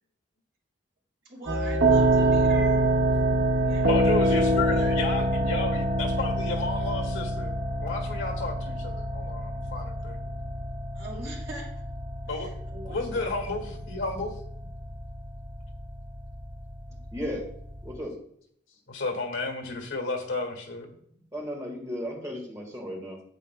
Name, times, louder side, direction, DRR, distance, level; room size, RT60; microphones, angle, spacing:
voice 1, 1.2-3.0 3.6-4.1 10.9-11.7 12.3-13.6 21.1-21.2, right 1 dB, 55° right, -5 dB, 3.4 m, -42 dB
sound 1, 1.5-17.9, right 1 dB, 75° right, 1.0 m, -26 dB
voice 2, 3.8-7.5 7.8-10.2 12.3-12.5 12.9-14.3 18.9-20.9, left 3 dB, 85° left, 3 dB, 1.7 m, -32 dB
voice 3, 17.1-17.5 17.8-18.2 21.3-23.2, equal, 15° right, -1 dB, 1.6 m, -35 dB
9.0 x 8.1 x 2.2 m, 0.65 s
head